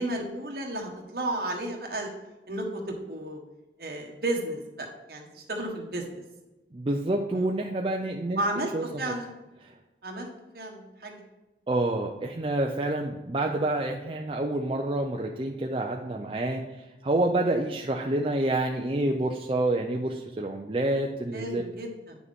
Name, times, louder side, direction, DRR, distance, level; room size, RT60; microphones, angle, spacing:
voice 1, 0.0-2.1 2.5-3.4 3.8-6.2 7.3-7.5 8.4-9.3 10.0-10.3 10.5-11.1 13.5-13.6 21.3-22.2, right 1 dB, 55° right, 1 dB, 1.5 m, -33 dB
voice 2, 6.7-8.4 8.7-8.8 9.6-9.7 11.7-16.6 17.0-21.6, right 2 dB, 30° right, 1 dB, 0.5 m, -28 dB
9.5 x 6.1 x 3.6 m, 1.1 s
head